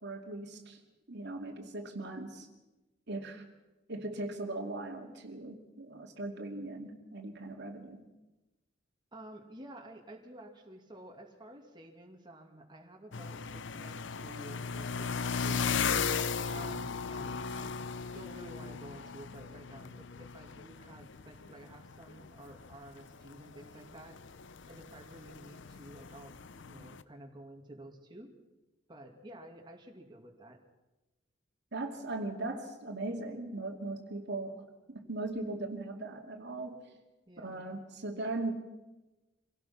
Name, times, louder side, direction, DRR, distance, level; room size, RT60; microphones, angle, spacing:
voice 1, 0.0-0.8 1.1-2.5 3.1-3.4 3.9-8.1 31.7-34.6 34.9-36.8 37.4-38.5, right 2 dB, 60° right, 3 dB, 2.5 m, -39 dB
voice 2, 9.1-16.0 16.3-17.8 18.1-24.2 24.6-28.3 28.9-30.6 37.3-37.6, right 1 dB, 25° right, 1 dB, 2.5 m, -51 dB
sound 1, 13.1-27.0, left 6 dB, 70° left, 0.7 m, -37 dB
25.5 x 17.5 x 5.8 m, 1.1 s
head